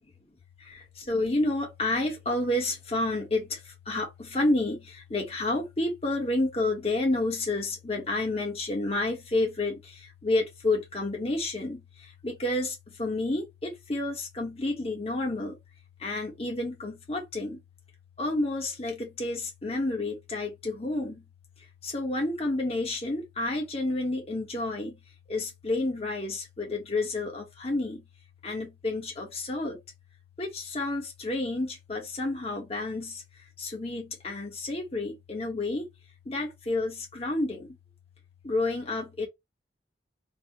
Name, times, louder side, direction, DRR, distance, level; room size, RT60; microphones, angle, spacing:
voice 1, 0.6-15.6 16.0-17.6 18.2-21.2 21.8-25.0 25.3-28.0 28.4-29.8 30.4-33.2 33.6-35.9 36.2-37.7 38.4-39.3, left 2 dB, 35° left, 1.3 m, -30 dB
4.1 x 2.4 x 3.0 m
head